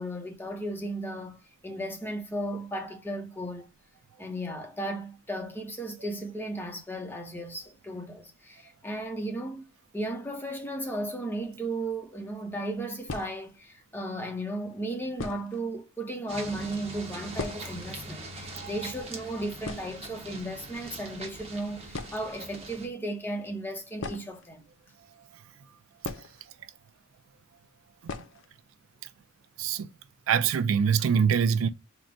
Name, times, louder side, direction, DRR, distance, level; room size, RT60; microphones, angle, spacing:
voice 1, 0.0-3.7 4.2-9.7 9.9-24.6, right 1 dB, 10° left, 0.7 m, -35 dB
sound 1, 12.0-12.2 13.0-13.7 14.6-14.7 15.1-15.7 16.0-16.1 16.3-16.5 16.9-17.9 18.2-18.3 18.6-18.9 19.2-19.3 19.6-20.5 21.5-21.6 21.9-22.5 23.9-25.0 26.0-26.8 27.1-27.2 28.0-28.5 28.8-28.9 29.3-29.4 29.8-30.2, left 3 dB, 65° left, 0.5 m, -39 dB
sound 2, 16.3-22.9, right 2 dB, 30° right, 0.9 m, -41 dB
voice 2, 30.3-31.7, right 7 dB, 70° right, 0.4 m, -24 dB
3.8 x 2.1 x 4.4 m
head